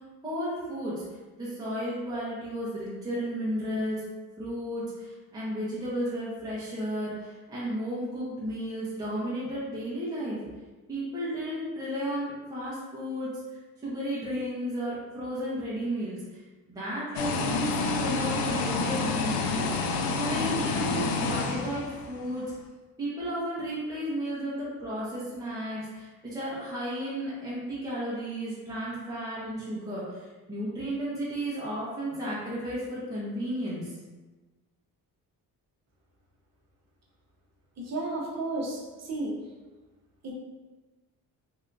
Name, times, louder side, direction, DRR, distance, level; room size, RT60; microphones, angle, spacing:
voice 1, 0.2-1.0 1.4-4.1 4.4-10.4 10.9-16.4 16.7-22.5 23.0-33.9, equal, 10° right, -8 dB, 0.9 m, -33 dB
sound 1, 17.1-22.3, left 4 dB, 70° left, 0.5 m, -29 dB
voice 2, 37.8-39.4 40.2-40.3, right 2 dB, 45° right, -3 dB, 0.9 m, -33 dB
3.3 x 2.7 x 2.6 m, 1.2 s
cardioid pair, 110°, 37 cm